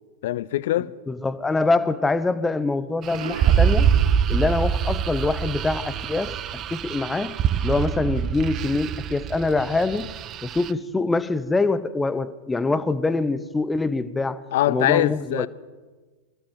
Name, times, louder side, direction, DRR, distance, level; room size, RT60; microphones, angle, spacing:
voice 1, 0.2-0.9 14.5-15.5, left 13 dB, 55° left, 0.7 m, -22 dB
voice 2, 1.1-3.9 4.3-6.4 6.7-7.4 7.6-10.1 10.4-15.5, left 3 dB, 10° left, 1.1 m, -24 dB
sound 1, 3.0-10.7, right 8 dB, 30° right, 0.8 m, -24 dB
Explosion, 3.1-5.0, right 7 dB, 70° right, 0.6 m, -37 dB
23.5 x 16.0 x 7.7 m
figure-of-eight pair, 90°, 0 cm